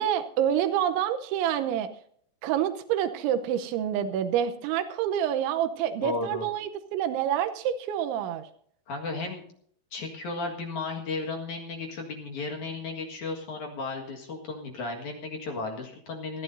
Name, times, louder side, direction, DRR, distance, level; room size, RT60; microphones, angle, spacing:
voice 1, 0.0-1.9 2.4-8.5, right 10 dB, 90° right, 8 dB, 3.2 m, -27 dB
voice 2, 6.0-6.5 8.9-9.4 9.9-16.4, left 3 dB, 55° left, 2 dB, 2.5 m, -34 dB
21.0 x 14.0 x 2.7 m, 0.62 s
omnidirectional pair, 5.3 m